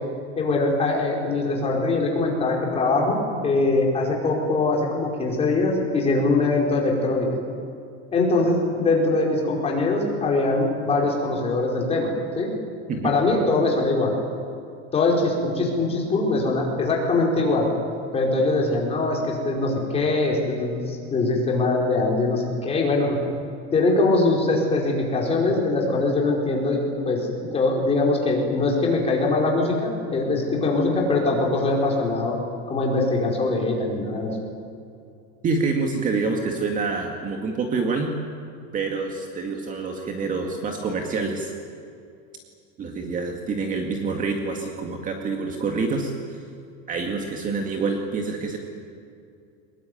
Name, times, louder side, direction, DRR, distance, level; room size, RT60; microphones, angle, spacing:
voice 1, 0.4-7.3 8.1-12.5 13.0-14.1 14.9-17.7 18.1-23.2 23.7-32.3 32.7-34.3, left 2 dB, 15° left, -1 dB, 5.0 m, -22 dB
voice 2, 35.4-38.1 38.7-41.5 42.8-46.4 46.9-48.6, right 4 dB, 25° right, 2 dB, 2.1 m, -27 dB
23.5 x 21.5 x 9.3 m, 2.5 s
supercardioid pair, 165°, 34 cm